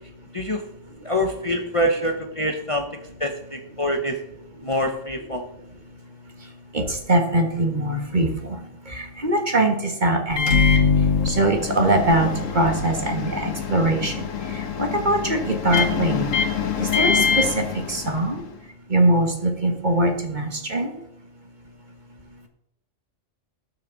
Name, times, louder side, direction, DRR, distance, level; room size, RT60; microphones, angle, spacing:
voice 1, 1.0-2.9 3.2-4.2 4.6-5.4, equal, 25° left, 3 dB, 1.0 m, -25 dB
voice 2, 6.7-8.6 8.9-10.8 11.2-14.1 14.8-16.3 16.8-18.4 18.9-20.9, right 1 dB, 35° right, 4 dB, 1.8 m, -22 dB
Microwave oven, 10.3-18.5, left 6 dB, 80° left, 1.5 m, -24 dB
19.0 x 6.7 x 4.0 m, 0.80 s
omnidirectional pair, 1.3 m